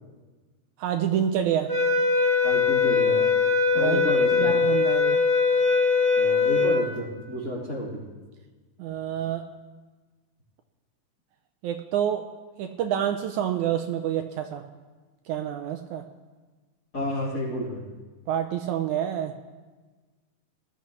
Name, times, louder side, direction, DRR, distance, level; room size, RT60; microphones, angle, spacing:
voice 1, 0.8-1.7 3.8-4.0 4.3-5.2 8.8-9.5 11.6-12.3 12.6-14.6 15.3-16.0 18.3-19.3, right 10 dB, 80° right, 6 dB, 1.9 m, -27 dB
sound 1, 1.7-6.8, left 4 dB, 30° right, 1.6 m, -21 dB
voice 2, 2.4-3.3 3.7-4.5 6.2-8.0 16.9-17.8, equal, 30° left, -9 dB, 3.3 m, -31 dB
20.0 x 12.5 x 3.2 m, 1.3 s
omnidirectional pair, 3.8 m